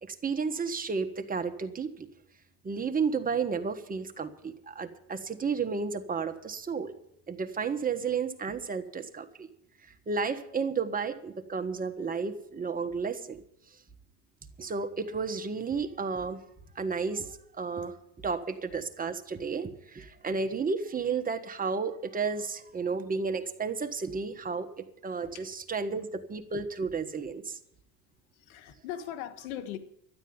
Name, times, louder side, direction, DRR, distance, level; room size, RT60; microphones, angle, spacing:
voice 1, 0.0-2.1 2.6-6.9 7.3-9.5 10.1-13.4 14.6-16.4 16.7-17.9 18.2-27.6, right 5 dB, 20° right, 7 dB, 1.4 m, -32 dB
voice 2, 28.3-29.8, left 10 dB, 85° left, 10 dB, 1.5 m, -39 dB
12.5 x 9.2 x 8.8 m, 0.74 s
supercardioid pair, 100°, 42 cm